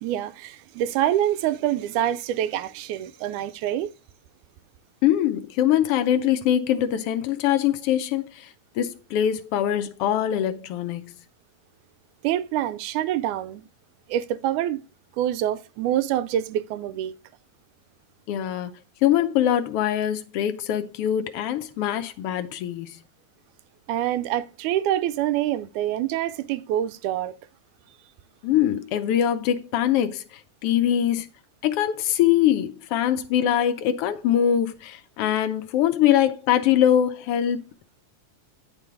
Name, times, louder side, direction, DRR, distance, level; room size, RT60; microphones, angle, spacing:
voice 1, 0.0-3.9 12.2-13.6 14.1-14.8 15.2-17.2 23.9-27.4, right 12 dB, 90° right, 2.1 m, -26 dB
voice 2, 5.0-8.5 8.8-11.1 18.3-18.7 19.0-23.0 28.4-31.3 31.6-37.6, left 10 dB, 80° left, 1.4 m, -23 dB
9.8 x 5.4 x 4.7 m
omnidirectional pair, 3.4 m